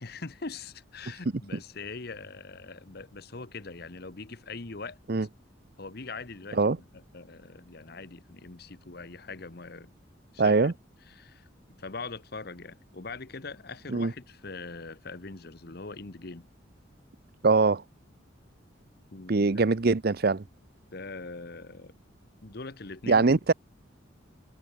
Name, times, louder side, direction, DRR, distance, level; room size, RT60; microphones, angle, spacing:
voice 1, 0.0-5.0 5.8-9.9 10.3-10.7 11.1-11.5 11.8-16.5 19.1-19.5 20.9-21.9 22.4-23.5, left 3 dB, 55° left, 1.1 m, -42 dB
voice 2, 10.4-10.7 13.9-14.1 17.4-17.8 19.3-20.4 23.1-23.5, right 3 dB, 55° right, 0.7 m, -22 dB
head